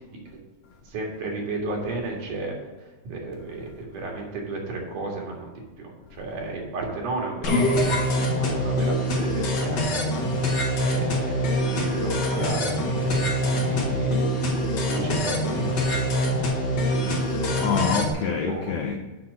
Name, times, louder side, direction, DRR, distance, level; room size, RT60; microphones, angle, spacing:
voice 1, 0.9-2.5 3.1-5.5 5.8-10.2 10.8-14.3 14.8-16.4 18.2-18.8, right 3 dB, 80° right, -1 dB, 3.4 m, -33 dB
sound 1, 7.4-18.1, equal, 60° left, 1.2 m, -24 dB
voice 2, 16.9-19.0, left 6 dB, 85° left, 3 dB, 1.4 m, -28 dB
7.4 x 5.9 x 6.3 m, 1.2 s
omnidirectional pair, 3.6 m